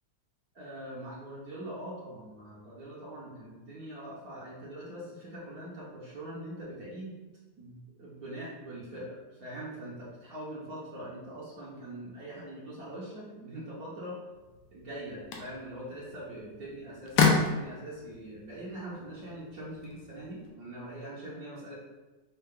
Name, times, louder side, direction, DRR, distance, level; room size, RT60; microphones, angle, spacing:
voice 1, 0.5-7.2 7.6-14.2 14.7-21.7, right 1 dB, 60° right, -7 dB, 1.3 m, -42 dB
sound 1, 14.3-20.5, left 4 dB, 75° left, 1.3 m, -32 dB
5.5 x 2.3 x 3.7 m, 1.2 s
omnidirectional pair, 1.9 m